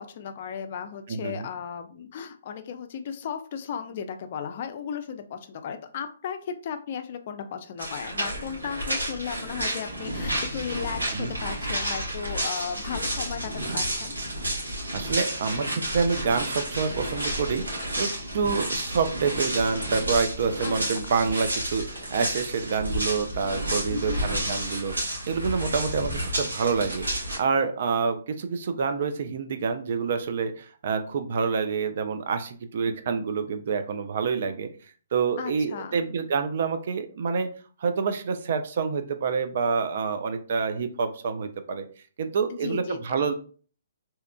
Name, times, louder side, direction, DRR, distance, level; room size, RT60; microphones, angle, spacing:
voice 1, 0.0-14.1 20.6-21.1 23.9-24.3 35.4-36.0 42.5-43.0, left 7 dB, 45° left, 7 dB, 0.4 m, -35 dB
voice 2, 1.1-1.5 11.1-11.3 14.9-34.7 35.1-37.5 37.8-41.9 42.2-43.3, right 5 dB, 55° right, 8 dB, 0.3 m, -27 dB
sound 1, 7.8-27.4, right 1 dB, 85° right, 1.2 m, -31 dB
2.7 x 2.4 x 2.2 m, 0.41 s
figure-of-eight pair, 135°, 0 cm